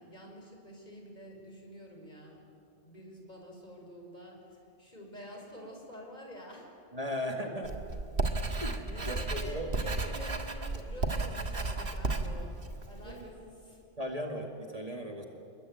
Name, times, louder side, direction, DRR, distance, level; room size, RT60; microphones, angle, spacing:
voice 1, 0.0-2.4 2.8-6.8 7.2-7.5 8.8-13.8, equal, 40° left, 0 dB, 5.9 m, -48 dB
voice 2, 6.9-7.7 8.6-9.7 13.0-13.3 14.0-15.3, equal, 35° right, 2 dB, 2.4 m, -37 dB
Writing, 7.6-13.3, right 2 dB, 55° right, 2.0 m, -34 dB
29.0 x 22.0 x 9.3 m, 2.5 s
omnidirectional pair, 1.2 m